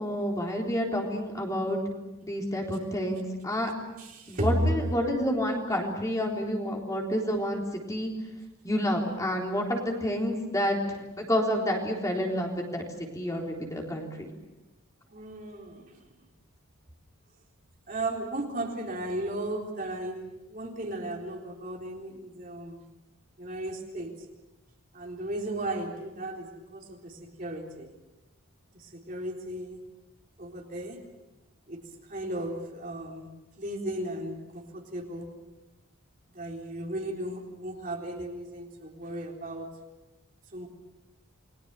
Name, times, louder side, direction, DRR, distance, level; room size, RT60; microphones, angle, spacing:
voice 1, 0.0-1.8 2.2-3.7 4.3-8.1 8.6-12.8 13.1-14.3, equal, 15° left, 0 dB, 3.8 m, -29 dB
voice 2, 4.0-4.7 15.1-16.1 17.9-22.8 23.4-24.1 24.9-27.9 28.7-29.8 30.4-31.0 31.7-31.8 32.1-33.3 33.6-35.3 36.3-39.7 40.5-40.7, right 1 dB, 40° right, 0 dB, 3.8 m, -35 dB
29.5 x 22.5 x 6.9 m, 1.0 s
head